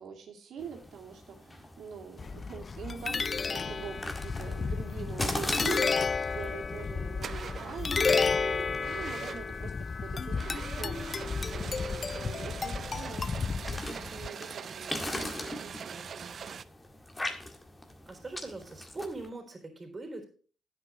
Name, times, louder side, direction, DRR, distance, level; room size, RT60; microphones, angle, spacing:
voice 1, 0.0-16.6, right 6 dB, 70° right, 2 dB, 2.5 m, -44 dB
sound 1, 0.6-19.3, left 1 dB, 15° left, 1.7 m, -42 dB
sound 2, 2.2-14.3, left 5 dB, 35° left, 0.4 m, -32 dB
sound 3, 6.6-6.8 7.2-7.9 8.8-9.6 10.3-16.6, right 7 dB, 50° right, 0.4 m, -42 dB
voice 2, 18.1-20.2, right 2 dB, 25° right, 3 dB, 3.7 m, -41 dB
9.9 x 8.1 x 4.7 m, 0.42 s
cardioid pair, 90°, 0 cm